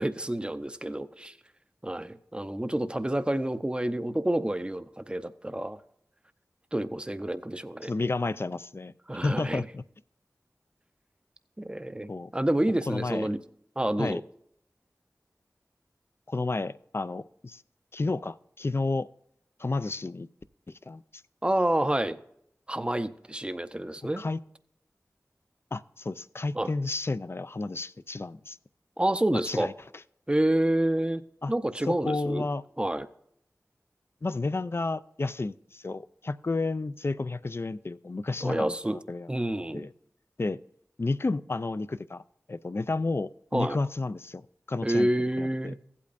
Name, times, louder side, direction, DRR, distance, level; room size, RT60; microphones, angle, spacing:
voice 1, 0.0-1.4 1.8-5.8 6.7-7.9 9.1-9.6 11.6-13.4 13.8-14.2 21.4-22.2 22.7-24.2 26.5-26.7 29.0-29.7 30.3-31.2 31.5-32.5 32.8-33.1 38.4-39.0 39.3-39.9 43.5-43.8 44.8-45.8, right 1 dB, 15° right, 11 dB, 0.6 m, -28 dB
voice 2, 7.8-8.9 9.2-9.8 12.1-12.3 12.9-13.3 14.0-14.2 16.3-17.6 17.9-19.1 19.6-20.3 20.9-21.0 24.2-24.4 25.7-28.6 29.5-29.7 31.4-31.5 31.9-32.6 34.2-39.3 39.7-39.9 40.4-40.6 41.0-42.2 42.5-45.1 45.4-45.7, left 3 dB, 45° left, 15 dB, 0.4 m, -31 dB
15.5 x 8.5 x 2.5 m, 0.71 s
wide cardioid pair, 40°, 6 cm